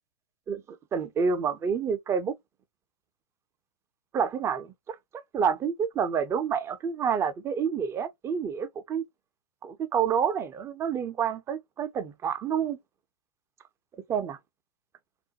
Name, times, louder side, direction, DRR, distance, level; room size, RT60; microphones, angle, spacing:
voice 1, 0.9-2.3 4.1-5.0 5.3-9.0 9.6-12.8 14.1-14.4, right 7 dB, 15° right, 0.3 m, -28 dB
2.3 x 2.1 x 2.7 m
figure-of-eight pair, 105°, 20 cm